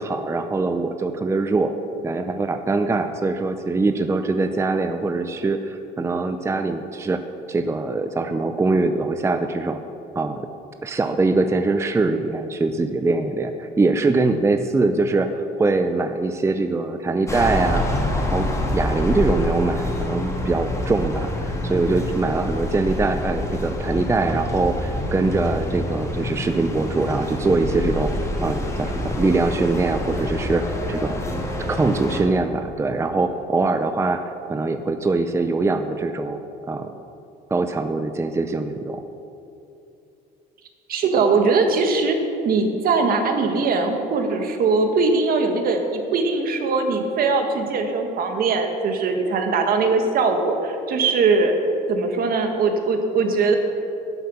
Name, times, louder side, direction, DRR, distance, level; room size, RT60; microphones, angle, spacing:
voice 1, 0.0-1.7 2.0-7.2 7.5-9.8 10.1-10.5 10.8-17.8 18.3-28.1 28.4-31.2 31.7-34.2 34.5-36.4 36.7-36.9 37.5-39.0, right 3 dB, 15° right, 7 dB, 0.5 m, -23 dB
sound 1, 17.3-32.2, left 1 dB, 15° left, 2.3 m, -26 dB
voice 2, 40.9-42.2 42.4-51.6 51.9-53.6, right 4 dB, 60° right, 5 dB, 1.5 m, -21 dB
11.5 x 7.8 x 7.1 m, 2.8 s
cardioid pair, 110°, 17 cm